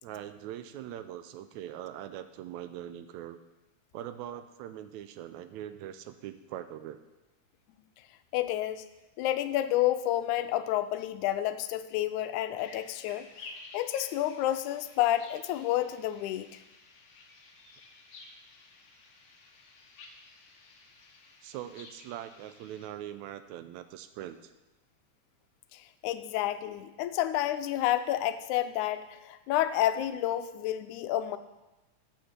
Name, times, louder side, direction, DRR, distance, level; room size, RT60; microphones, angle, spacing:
voice 1, 0.0-3.4 3.9-7.0 14.4-14.5 21.4-24.5, right 11 dB, 80° right, 11 dB, 1.9 m, -42 dB
voice 2, 8.3-8.9 9.2-13.3 13.7-16.5 25.7-31.4, left 13 dB, 85° left, 11 dB, 2.0 m, -30 dB
sound 1, 12.6-22.9, left 3 dB, 55° left, 1.7 m, -52 dB
8.0 x 6.5 x 7.2 m, 1.0 s
omnidirectional pair, 3.4 m